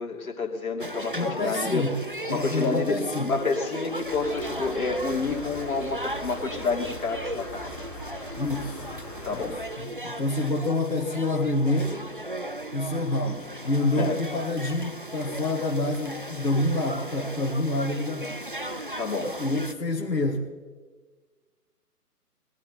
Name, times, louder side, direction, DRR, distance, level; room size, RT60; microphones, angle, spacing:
voice 1, 0.0-1.9 2.3-7.7 9.2-9.5 14.0-14.2 19.0-19.3, left 4 dB, 60° left, 2 dB, 3.0 m, -29 dB
sound 1, 0.8-19.7, right 1 dB, 35° right, 0.5 m, -37 dB
voice 2, 1.1-2.0 2.3-3.3 8.4-8.8 9.3-12.1 12.7-18.4 19.2-20.5, left 2 dB, 80° left, 0 dB, 2.0 m, -27 dB
sound 2, 4.0-9.6, left 2 dB, ahead, 0.8 m, -41 dB
21.0 x 12.5 x 4.2 m, 1.4 s
figure-of-eight pair, 145°, 48 cm